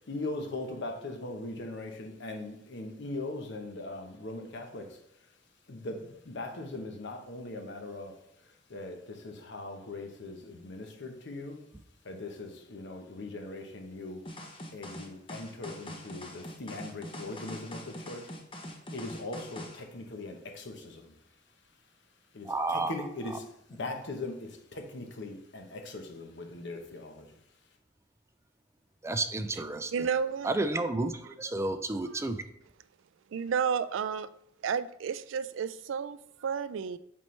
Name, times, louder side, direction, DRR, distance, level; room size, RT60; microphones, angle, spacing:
voice 1, 0.1-5.0 5.7-8.1 8.7-11.6 12.0-14.2 14.7-18.3 18.9-21.1 22.3-27.3, left 2 dB, 65° left, 4 dB, 0.9 m, -40 dB
sound 1, 14.3-19.8, left 1 dB, 30° left, 0.8 m, -43 dB
voice 2, 22.4-22.9 29.0-29.9 30.4-32.4, right 2 dB, 15° right, 9 dB, 0.4 m, -31 dB
voice 3, 29.9-30.5 32.1-32.2 33.3-34.3 34.6-37.0, right 6 dB, 80° right, 14 dB, 0.4 m, -31 dB
7.3 x 4.3 x 3.2 m, 0.75 s
head